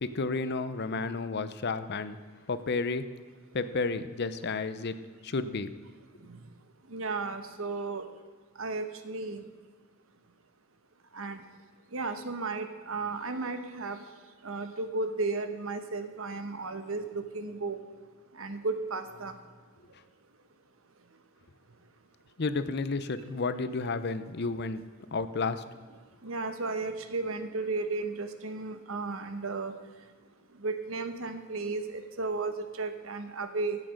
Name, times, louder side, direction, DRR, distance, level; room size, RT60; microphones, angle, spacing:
voice 1, 0.0-2.2 2.5-3.1 3.5-5.7 22.4-24.9 25.1-25.6, left 3 dB, 55° left, 12 dB, 0.7 m, -31 dB
voice 2, 6.9-8.0 8.6-9.4 11.1-11.4 11.9-14.0 14.4-17.8 18.4-19.3 26.2-29.7 30.6-33.8, right 3 dB, 85° right, 8 dB, 1.1 m, -34 dB
12.5 x 8.5 x 6.5 m, 1.5 s
head